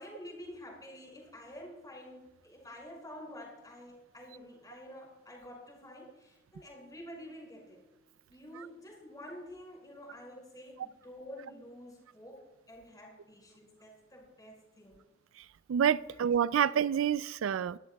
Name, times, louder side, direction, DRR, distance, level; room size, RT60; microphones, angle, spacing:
voice 1, 0.0-7.8 8.3-15.0 16.0-16.2 17.7-17.8, left 1 dB, 20° left, 5.6 m, -49 dB
voice 2, 15.7-17.8, right 8 dB, 85° right, 0.4 m, -28 dB
23.5 x 13.5 x 2.3 m
head